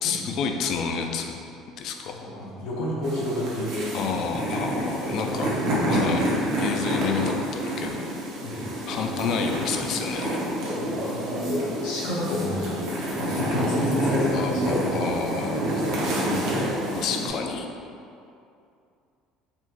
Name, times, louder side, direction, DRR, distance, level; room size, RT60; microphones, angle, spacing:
voice 1, 0.0-1.4 1.8-2.1 3.9-5.5 5.9-6.3 6.6-8.0 8.9-10.4 14.3-15.6 16.9-17.7, left 6 dB, 50° left, 4 dB, 0.4 m, -29 dB
voice 2, 2.1-4.3 8.4-8.6 8.9-9.3 10.6-15.1 15.4-16.6, left 1 dB, 90° left, -6 dB, 1.1 m, -30 dB
sound 1, 3.0-17.3, equal, 75° right, 0.9 m, -28 dB
4.2 x 3.0 x 3.0 m, 2.5 s
cardioid pair, 145°, 0 cm